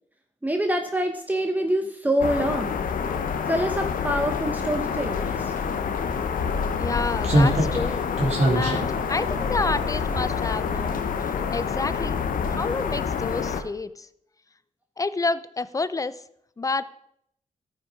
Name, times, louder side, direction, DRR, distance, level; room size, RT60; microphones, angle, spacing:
voice 1, 0.4-2.8 3.5-5.5, equal, 10° right, 4 dB, 1.0 m, -26 dB
sound 1, 2.2-13.6, left 6 dB, 80° left, 1.0 m, -27 dB
Slam, 5.8-5.9 7.2-10.7 11.0-11.2, right 1 dB, 55° right, 2.9 m, -25 dB
voice 2, 6.8-8.1 8.5-12.2 12.5-14.1 15.0-16.2 16.6-16.8, left 3 dB, 25° left, 15 dB, 0.6 m, -29 dB
14.0 x 5.7 x 4.9 m, 0.72 s
cardioid pair, 90°, 14 cm